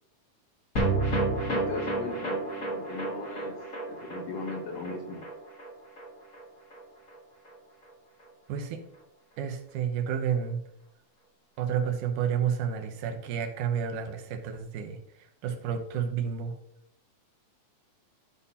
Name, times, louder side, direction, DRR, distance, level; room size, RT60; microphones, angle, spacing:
sound 1, 0.8-7.2 7.5-7.6 7.8-7.9, right 2 dB, 45° left, 1.2 m, -31 dB
voice 1, 1.5-5.3, left 3 dB, 65° left, 2 dB, 1.9 m, -38 dB
voice 2, 8.5-8.8 9.4-10.6 11.6-15.0 15.4-16.5, right 8 dB, 85° right, 5 dB, 2.4 m, -30 dB
12.0 x 5.5 x 2.8 m, 0.71 s
omnidirectional pair, 3.5 m